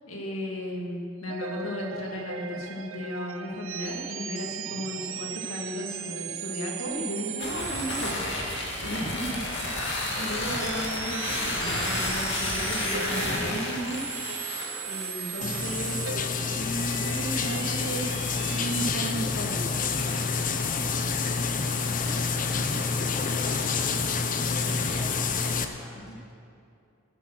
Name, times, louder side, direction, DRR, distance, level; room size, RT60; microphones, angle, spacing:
voice 1, 0.1-9.4 10.1-14.0 14.9-16.0 16.5-19.8 25.9-26.1, equal, 85° left, -1 dB, 2.3 m, -35 dB
sound 1, 1.2-19.1, right 7 dB, 75° right, 0.7 m, -37 dB
sound 2, 7.4-25.7, left 2 dB, 55° left, 2.2 m, -34 dB
sound 3, 15.4-25.6, left 5 dB, 40° left, 0.7 m, -28 dB
voice 2, 21.5-23.0 23.9-26.3, equal, 5° right, -3 dB, 1.6 m, -49 dB
15.5 x 8.4 x 6.4 m, 2.4 s
head